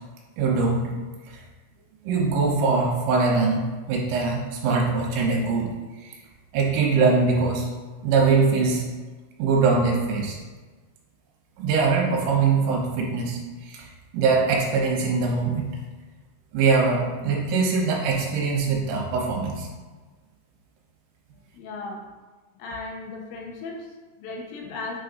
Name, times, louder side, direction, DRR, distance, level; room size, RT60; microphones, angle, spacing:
voice 1, 0.4-0.9 1.3-1.4 2.0-5.7 6.0-6.2 6.5-7.7 8.0-8.9 9.4-10.4 11.6-13.9 14.1-15.7 16.5-19.7, right 4 dB, 75° right, -1 dB, 3.3 m, -22 dB
voice 2, 21.5-22.0 22.6-25.0, left 3 dB, 85° left, -1 dB, 3.6 m, -36 dB
9.4 x 5.5 x 2.6 m, 1.3 s
omnidirectional pair, 5.8 m